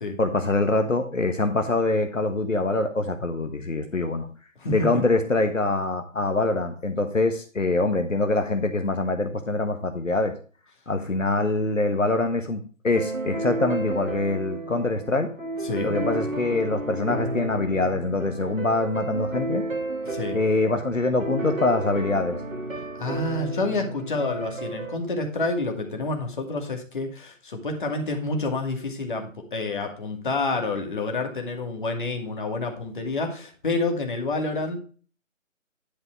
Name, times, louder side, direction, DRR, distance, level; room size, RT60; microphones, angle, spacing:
voice 1, 0.2-4.3 4.7-10.3 10.9-15.3 15.8-19.6 20.3-22.4, left 2 dB, 70° left, 6 dB, 1.5 m, -24 dB
voice 2, 4.6-5.0 15.6-15.9 20.0-20.4 23.0-34.8, left 3 dB, 40° left, 4 dB, 2.3 m, -28 dB
sound 1, 12.9-24.9, right 2 dB, 80° right, 2.1 m, -32 dB
11.0 x 5.4 x 4.6 m, 0.39 s
figure-of-eight pair, 155°, 40 cm